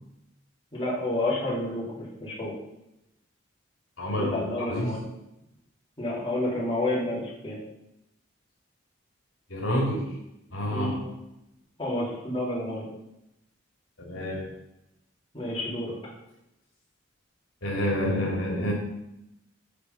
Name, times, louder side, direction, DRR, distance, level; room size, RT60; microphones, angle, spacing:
voice 1, 0.7-1.8 2.2-2.5 4.2-5.0 6.0-7.6 10.7-11.0 11.8-12.9 15.3-15.9, left 1 dB, 25° left, -7 dB, 3.5 m, -29 dB
voice 2, 4.0-4.3 4.7-5.0 9.5-10.1 10.5-10.9 14.0-14.5 17.6-18.7, equal, 80° left, -4 dB, 2.6 m, -28 dB
8.7 x 5.1 x 5.4 m, 0.87 s
head